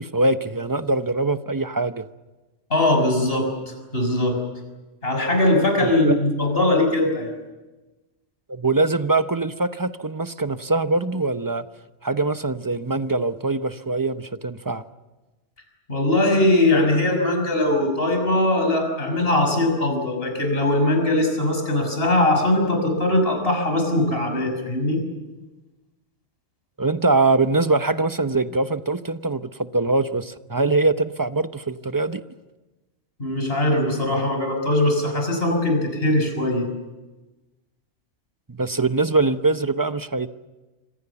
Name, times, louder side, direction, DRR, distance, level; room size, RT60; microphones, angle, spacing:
voice 1, 0.0-2.1 5.8-6.1 8.5-11.6 12.0-14.8 26.8-32.2 38.5-40.3, right 3 dB, 20° right, 10 dB, 0.8 m, -23 dB
voice 2, 2.7-4.4 5.0-7.3 15.9-25.0 33.2-36.7, left 1 dB, 50° left, 3 dB, 6.4 m, -21 dB
26.5 x 26.5 x 7.1 m, 1.1 s
omnidirectional pair, 1.3 m